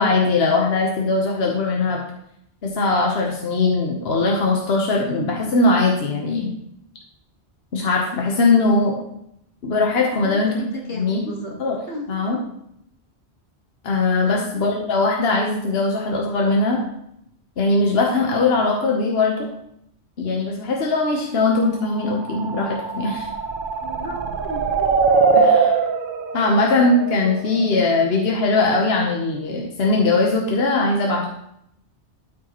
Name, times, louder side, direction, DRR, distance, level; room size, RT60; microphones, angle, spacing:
voice 1, 0.0-2.0 2.6-6.5 7.7-9.0 9.6-11.2 11.6-11.8 12.1-12.4 13.8-16.8 17.6-19.5 20.2-23.3 25.3-25.8 26.3-31.3, left 3 dB, 65° left, -1 dB, 1.2 m, -20 dB
voice 2, 10.2-11.5 11.9-12.1 14.2-14.5 23.8-24.9, left 1 dB, 85° left, -1 dB, 2.0 m, -34 dB
sound 1, 22.0-27.8, right 4 dB, 55° right, 0.8 m, -22 dB
12.0 x 5.1 x 3.0 m, 0.76 s
omnidirectional pair, 1.1 m